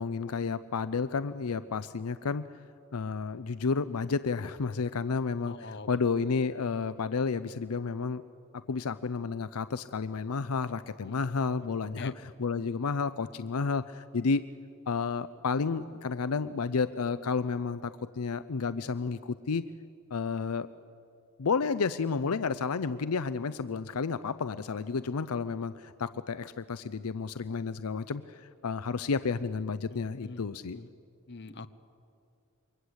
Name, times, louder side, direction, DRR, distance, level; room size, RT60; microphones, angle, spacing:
voice 1, 0.0-2.4 2.9-8.2 8.5-14.5 14.9-19.6 20.1-20.7 21.4-30.8, left 5 dB, 85° left, 13 dB, 0.6 m, -31 dB
voice 2, 5.4-6.0 11.0-11.2 12.0-12.1 29.9-30.4 30.7-30.9 31.3-31.7, left 3 dB, 50° left, 10 dB, 1.1 m, -44 dB
28.0 x 23.5 x 8.1 m, 2.6 s
head